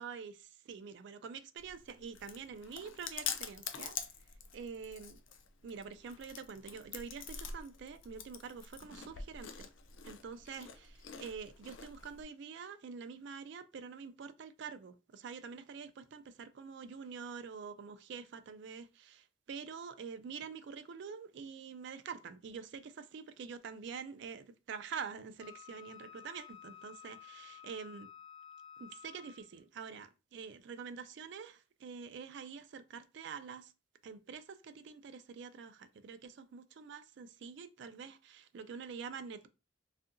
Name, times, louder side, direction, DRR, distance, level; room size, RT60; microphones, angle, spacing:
voice 1, 0.0-4.0 4.5-5.2 5.6-9.7 10.0-28.1 28.8-33.7 34.0-39.5, right 6 dB, 55° right, 0.3 m, -46 dB
Chewing mastication, 1.6-12.2, left 7 dB, 65° left, 0.4 m, -46 dB
Wind instrument woodwind instrument, 25.4-29.6, left 9 dB, 5° right, 1.4 m, -53 dB
2.7 x 2.4 x 2.5 m
head